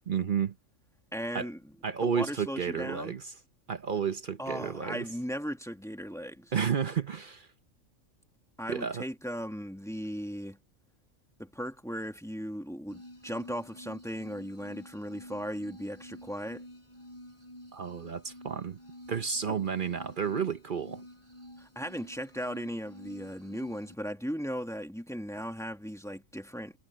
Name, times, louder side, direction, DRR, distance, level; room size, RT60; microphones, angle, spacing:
voice 1, 0.1-0.5 1.3-1.5 1.8-3.3 3.7-5.1 6.5-7.5 8.7-9.0 17.7-18.8 19.1-21.0, right 7 dB, 45° right, 0.8 m, -31 dB
voice 2, 1.1-1.6 2.0-3.2 4.4-6.5 8.6-10.6 11.4-16.6 19.5-19.6 21.6-26.7, equal, ahead, 1.6 m, -37 dB
sound 1, 12.9-23.9, equal, 20° left, 7.4 m, -50 dB
omnidirectional pair, 1.4 m